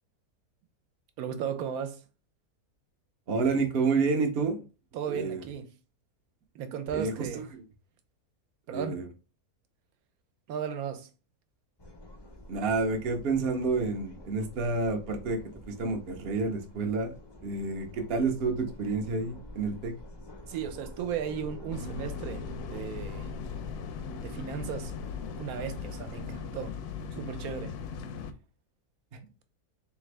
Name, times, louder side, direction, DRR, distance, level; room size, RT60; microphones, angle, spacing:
voice 1, 1.2-2.0 4.9-5.7 6.5-7.5 8.7-9.0 10.5-11.1 20.5-23.3 24.2-24.9 25.4-26.8 27.1-27.8, right 7 dB, 70° right, 1.1 m, -35 dB
voice 2, 3.3-4.6 5.1-5.4 6.9-7.6 8.7-9.1 12.5-15.4 15.7-19.9, right 4 dB, 50° right, 0.8 m, -29 dB
sound 1, 11.8-26.6, left 1 dB, 40° left, 0.3 m, -47 dB
sound 2, 21.7-28.3, left 6 dB, 80° left, 1.1 m, -39 dB
3.8 x 3.3 x 3.3 m
omnidirectional pair, 1.7 m